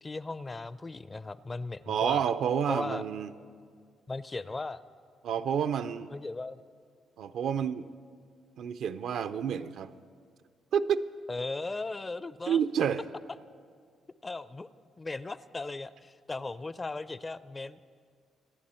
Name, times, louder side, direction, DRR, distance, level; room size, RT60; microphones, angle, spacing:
voice 1, 0.0-2.2 2.7-3.0 4.1-4.8 6.1-6.6 11.3-12.6 14.2-14.7 15.0-17.8, left 3 dB, 25° left, 16 dB, 0.4 m, -37 dB
voice 2, 1.9-3.3 5.2-6.1 7.2-7.9 8.6-9.9 10.7-11.1 12.5-13.0, right 8 dB, 75° right, 12 dB, 0.5 m, -29 dB
26.5 x 9.5 x 4.3 m, 2.1 s
cardioid pair, 90°, 0 cm